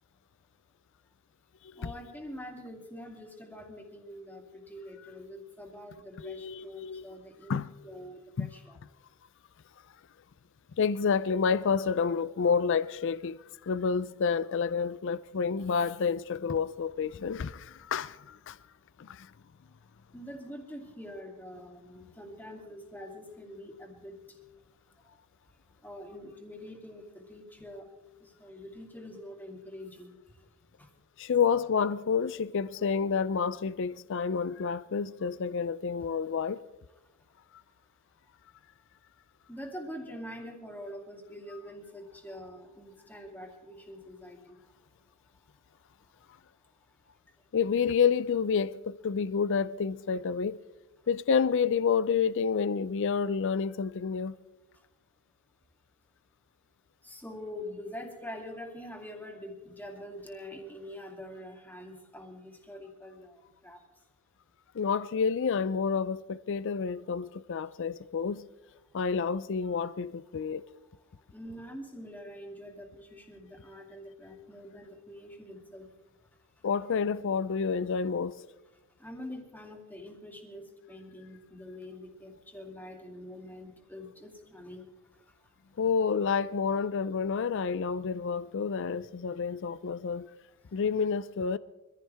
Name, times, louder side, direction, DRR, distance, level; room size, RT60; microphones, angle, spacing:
voice 1, 1.7-8.8 20.1-24.4 25.0-25.2 25.8-27.9 28.2-30.1 30.8-30.9 39.5-44.8 46.0-46.3 46.8-46.9 47.4-47.5 54.7-54.9 57.0-63.8 71.2-75.9 76.6-76.7 79.0-85.5 90.6-90.8, left 1 dB, 10° left, 2.6 m, -45 dB
voice 2, 6.2-7.1 7.5-7.7 8.4-8.5 10.8-18.6 19.0-19.3 31.2-36.6 47.5-50.6 51.1-54.4 64.7-68.5 68.9-70.7 76.6-78.4 85.8-90.3 90.7-91.6, left 6 dB, 55° left, 0.4 m, -29 dB
24.5 x 15.5 x 3.5 m
head